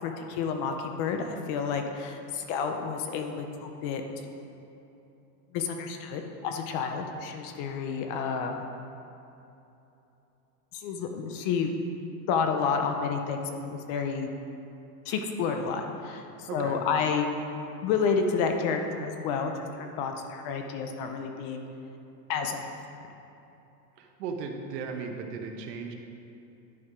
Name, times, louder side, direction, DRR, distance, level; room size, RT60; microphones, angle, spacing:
voice 1, 0.0-4.0 5.5-8.6 10.7-11.7 12.3-14.3 15.1-17.3 17.8-21.6 22.3-22.6, left 5 dB, 35° left, 5 dB, 0.5 m, -30 dB
voice 2, 16.5-16.8 24.0-25.9, right 5 dB, 90° right, 4 dB, 1.2 m, -36 dB
11.0 x 4.6 x 4.8 m, 2.9 s
supercardioid pair, 165°, 47 cm